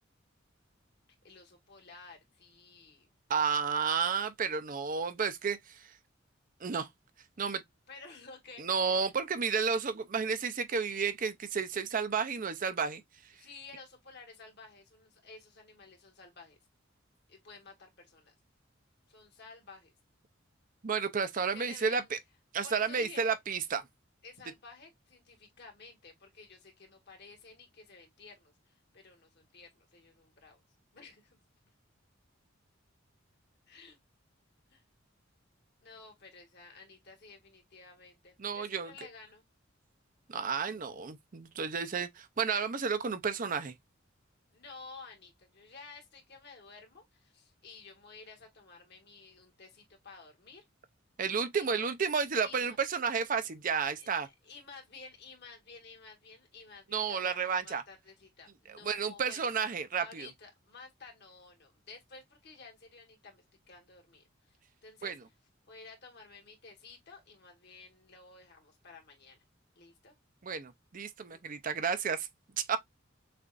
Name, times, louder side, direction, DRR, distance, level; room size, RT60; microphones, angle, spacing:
voice 1, 1.2-3.1 7.9-9.1 13.3-16.6 17.3-18.3 19.1-19.9 21.5-22.1 22.6-23.3 24.2-30.6 30.9-31.4 33.7-34.0 34.7-34.8 35.8-39.4 44.5-50.7 51.6-51.9 52.4-52.8 54.0-59.5 60.0-65.1 65.7-69.4 69.8-70.2 71.2-71.4, left 4 dB, 55° left, 1.7 m, -53 dB
voice 2, 3.3-5.8 6.6-6.9 7.4-7.6 8.6-13.0 20.8-22.2 22.5-23.8 38.4-38.9 40.3-43.7 51.2-54.3 56.9-57.8 58.7-60.3 65.0-65.1 70.4-72.3 72.6-72.8, right 6 dB, 45° right, 0.5 m, -32 dB
6.6 x 2.5 x 2.5 m
head